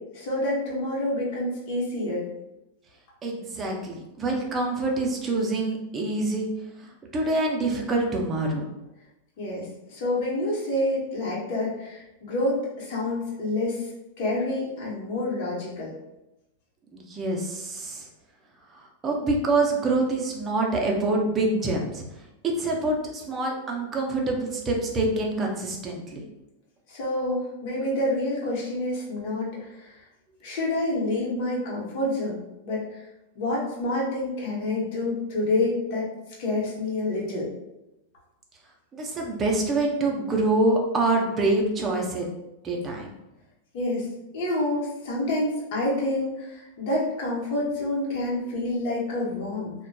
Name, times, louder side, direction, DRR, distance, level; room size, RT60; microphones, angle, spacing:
voice 1, 0.1-2.3 9.4-13.9 14.2-15.9 26.9-29.9 30.4-33.0 33.3-36.1 36.4-37.5 43.7-44.1 44.3-49.7, left 1 dB, 55° left, -5 dB, 0.9 m, -28 dB
voice 2, 3.2-6.5 6.8-8.7 16.9-18.1 18.7-22.0 22.4-26.2 38.9-42.3 42.6-43.1, right 2 dB, 20° right, 0 dB, 0.5 m, -26 dB
2.6 x 2.2 x 2.2 m, 0.94 s
supercardioid pair, 140°, 0 cm